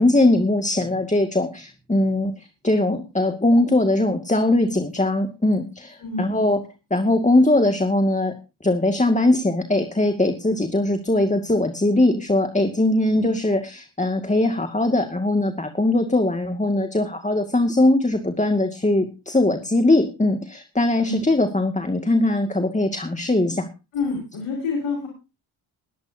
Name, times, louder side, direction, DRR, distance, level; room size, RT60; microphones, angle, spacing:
voice 1, 0.0-6.6 6.9-8.3 8.6-23.7, left 2 dB, 15° left, 6 dB, 2.2 m, -20 dB
voice 2, 6.0-6.3 13.1-13.4 21.0-21.2 23.9-25.1, left 3 dB, 85° left, -1 dB, 5.7 m, -28 dB
21.0 x 11.0 x 2.8 m, 0.30 s
supercardioid pair, 55°, 49 cm